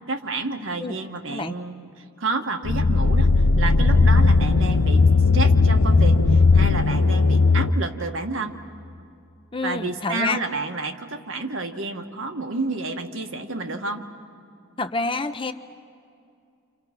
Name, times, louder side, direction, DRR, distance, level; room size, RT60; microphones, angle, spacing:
voice 1, 0.1-5.0 5.3-8.6 9.6-14.0, right 3 dB, 65° right, 5 dB, 1.6 m, -30 dB
sound 1, 2.6-7.7, left 3 dB, 85° left, 0.7 m, -17 dB
voice 2, 9.5-10.4 14.8-15.5, left 3 dB, 25° left, 9 dB, 0.7 m, -27 dB
29.5 x 27.5 x 6.0 m, 2.4 s
head